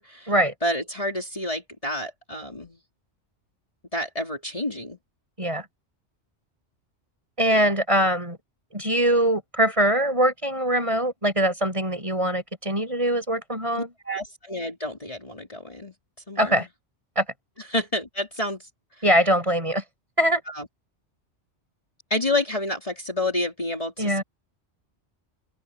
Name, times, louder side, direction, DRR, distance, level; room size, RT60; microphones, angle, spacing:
voice 1, 0.0-0.3 0.6-2.8 3.9-5.0 13.8-15.9 16.3-16.7 17.7-18.7 19.0-19.1 20.5-20.7 22.1-24.2, left 1 dB, 30° left, 3.8 m, -29 dB
voice 2, 7.4-8.4 8.7-13.9 16.4-16.7 17.2-17.3 19.0-19.8 20.2-20.4 24.0-24.2, right 1 dB, 25° right, 7.1 m, -22 dB
open air
omnidirectional pair, 1.2 m